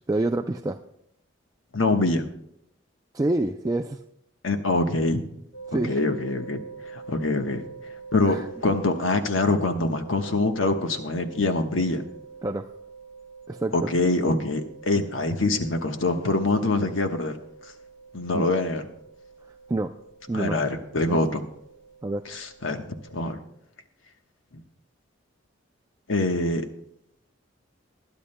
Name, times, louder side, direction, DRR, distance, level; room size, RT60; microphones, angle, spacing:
voice 1, 0.1-0.8 3.1-4.0 5.7-6.0 8.2-8.5 12.4-12.7 13.5-13.9 18.3-18.5 19.7-20.0 20.3-20.6 21.0-21.2 22.0-22.3, right 2 dB, 20° right, 5 dB, 0.3 m, -27 dB
voice 2, 1.7-2.2 4.4-5.2 5.7-6.6 6.9-7.6 8.1-12.0 13.7-17.4 18.1-18.9 20.3-21.4 22.3-22.8 23.1-23.4 26.1-26.6, left 2 dB, 85° left, 6 dB, 1.1 m, -24 dB
sound 1, 5.5-23.3, right 5 dB, 60° left, 1.6 m, -46 dB
21.0 x 11.5 x 2.2 m, 0.78 s
head